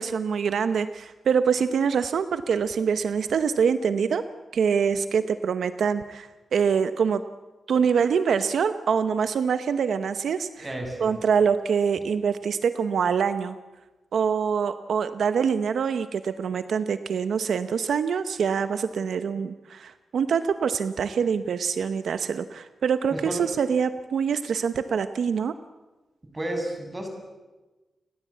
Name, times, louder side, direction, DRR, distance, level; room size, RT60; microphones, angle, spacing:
voice 1, 0.0-4.3 4.5-7.2 7.7-10.7 11.0-13.6 14.1-25.5, right 6 dB, 85° right, 11 dB, 0.9 m, -25 dB
voice 2, 10.6-11.2 23.1-23.4 26.3-27.1, right 1 dB, 20° right, 4 dB, 6.6 m, -31 dB
30.0 x 20.0 x 8.5 m, 1.2 s
wide cardioid pair, 125°, 0 cm